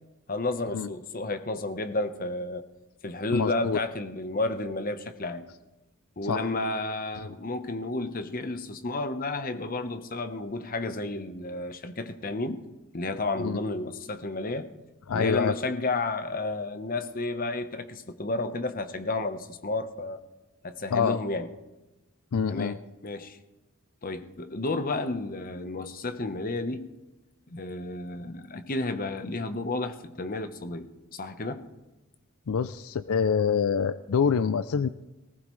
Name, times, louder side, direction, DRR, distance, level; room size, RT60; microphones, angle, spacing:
voice 1, 0.3-2.7 3.0-5.5 6.2-12.6 12.9-14.7 15.1-20.2 20.6-21.5 22.5-23.4 24.0-26.9 27.5-31.7, left 2 dB, 40° left, 9 dB, 1.0 m, -32 dB
voice 2, 3.3-3.8 6.3-6.5 7.2-7.3 13.4-13.6 15.1-15.5 20.9-21.2 22.3-22.8 32.5-34.9, left 6 dB, 75° left, 14 dB, 0.4 m, -26 dB
19.0 x 19.0 x 3.2 m, 1.0 s
head